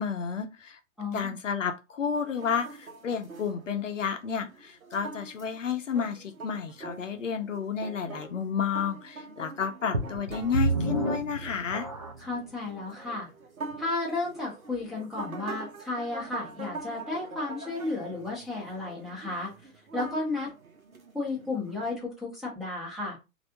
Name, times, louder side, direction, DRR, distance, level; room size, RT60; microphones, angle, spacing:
voice 1, 0.0-0.8 1.1-11.9, left 7 dB, 60° left, 0.7 m, -31 dB
voice 2, 1.0-1.4 12.2-13.3 13.8-19.5 19.9-20.5 21.1-23.2, left 3 dB, ahead, 0.9 m, -33 dB
sound 1, 2.2-22.0, right 3 dB, 75° right, 1.0 m, -44 dB
sound 2, 9.9-12.4 13.0-13.1 13.7-13.8, right 2 dB, 30° right, 0.4 m, -29 dB
3.2 x 2.6 x 2.7 m
figure-of-eight pair, 120°, 42 cm